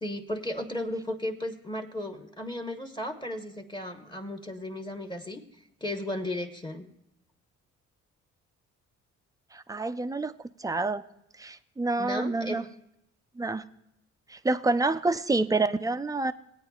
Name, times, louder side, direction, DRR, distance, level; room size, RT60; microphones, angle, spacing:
voice 1, 0.0-5.4 5.8-6.9 12.0-12.7, left 1 dB, 15° left, 4 dB, 1.0 m, -35 dB
voice 2, 9.5-10.3 10.6-11.0 11.4-12.6 13.4-13.6 14.3-16.3, right 3 dB, 10° right, 11 dB, 0.4 m, -27 dB
19.0 x 8.9 x 2.3 m, 0.78 s
cardioid pair, 90°, 30 cm